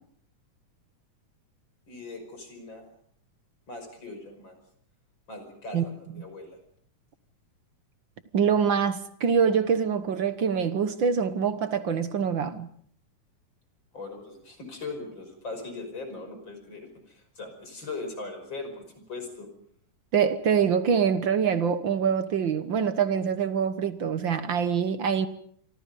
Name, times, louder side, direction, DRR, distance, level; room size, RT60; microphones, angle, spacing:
voice 1, 1.9-2.9 3.7-4.6 5.3-6.6 13.9-19.5, left 3 dB, 35° left, 6.0 m, -40 dB
voice 2, 8.3-12.7 20.1-25.3, right 7 dB, 60° right, 1.3 m, -25 dB
28.0 x 24.5 x 5.4 m
omnidirectional pair, 3.6 m